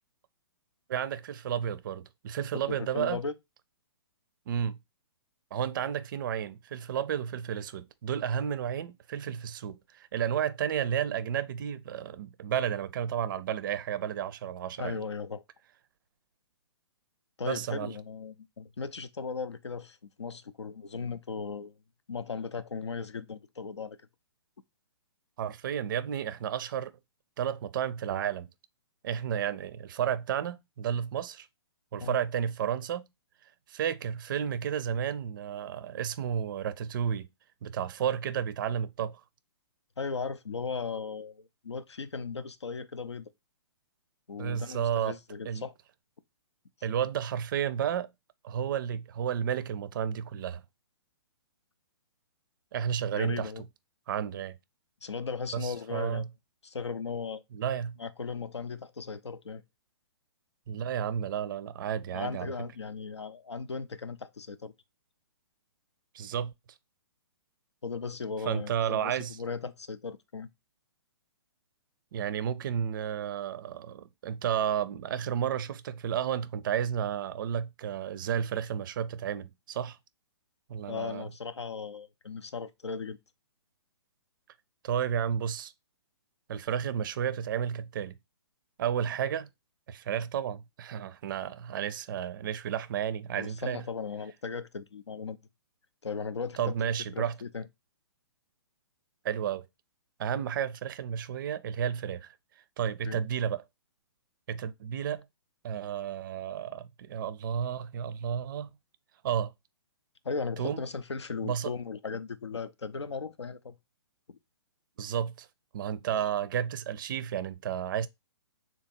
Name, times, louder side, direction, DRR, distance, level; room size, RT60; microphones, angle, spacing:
voice 1, 0.9-3.2 4.5-4.8 5.5-15.0 17.4-17.9 25.4-26.9 27.4-28.5 29.0-31.5 31.9-33.0 33.7-37.3 37.6-39.2 44.4-45.2 45.4-45.6 46.8-48.1 48.4-50.6 52.7-53.5 54.1-54.6 55.5-56.3 57.5-58.0 60.7-62.5 66.1-66.5 68.5-69.4 72.1-80.0 80.7-81.3 84.8-85.7 86.5-88.1 88.8-89.5 89.9-93.8 96.6-97.3 99.2-99.7 100.2-102.3 102.8-103.6 104.5-105.2 105.6-108.7 109.2-109.5 110.6-110.8 111.4-111.7 115.0-115.5 115.7-118.1, right 9 dB, 50° right, 0.4 m, -32 dB
voice 2, 2.5-3.3 14.8-15.4 17.4-21.8 22.1-24.0 32.0-32.2 40.0-43.3 44.3-45.7 53.1-53.6 55.0-56.3 56.6-57.4 58.0-59.6 62.1-64.7 67.8-70.5 80.9-83.2 93.4-95.4 96.0-97.7 103.0-103.2 110.2-113.8 114.3-114.4, left 5 dB, 85° left, 0.5 m, -37 dB
3.6 x 2.9 x 4.1 m
figure-of-eight pair, 125°, 14 cm